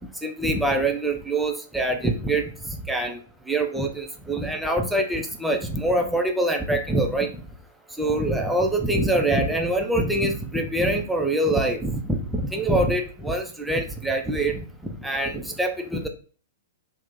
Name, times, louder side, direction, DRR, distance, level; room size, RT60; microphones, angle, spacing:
voice 1, 0.2-3.2 3.5-7.3 8.0-14.6 15.0-16.1, right 1 dB, 5° right, 2 dB, 0.4 m, -24 dB
2.7 x 2.1 x 3.5 m, 0.42 s
figure-of-eight pair, 105°, 0 cm